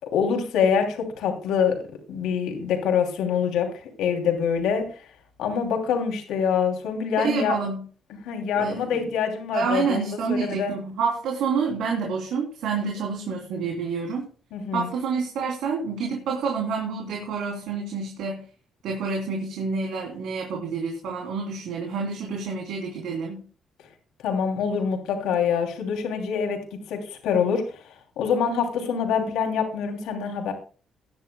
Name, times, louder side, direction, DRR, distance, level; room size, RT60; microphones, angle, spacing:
voice 1, 0.0-1.8 2.1-5.1 5.4-7.5 8.2-10.7 14.5-14.9 24.2-27.8 28.2-30.5, left 7 dB, 90° left, 3 dB, 2.9 m, -25 dB
voice 2, 7.2-7.8 8.5-9.0 9.5-14.3 14.7-18.4 18.8-23.4, right 5 dB, 85° right, -1 dB, 3.2 m, -28 dB
18.0 x 10.5 x 2.3 m, 0.38 s
cardioid pair, 90°, 0 cm